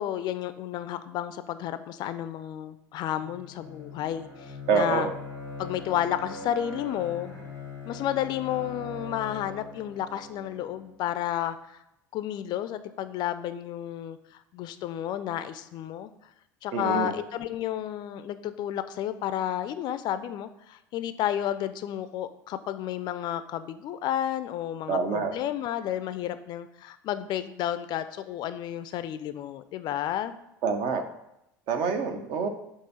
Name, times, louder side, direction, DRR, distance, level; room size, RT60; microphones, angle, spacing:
voice 1, 0.0-5.1 5.6-7.3 7.9-11.8 12.1-14.2 14.5-16.1 16.6-30.3, left 11 dB, 45° left, 12 dB, 0.4 m, -31 dB
Bowed string instrument, 3.1-11.0, left 3 dB, 90° right, 2.2 m, -41 dB
voice 2, 4.7-5.1 16.7-17.1 24.9-25.3 30.6-31.0 31.7-32.5, right 5 dB, 50° right, 7 dB, 0.8 m, -26 dB
6.6 x 2.9 x 5.5 m, 0.85 s
figure-of-eight pair, 70°, 10 cm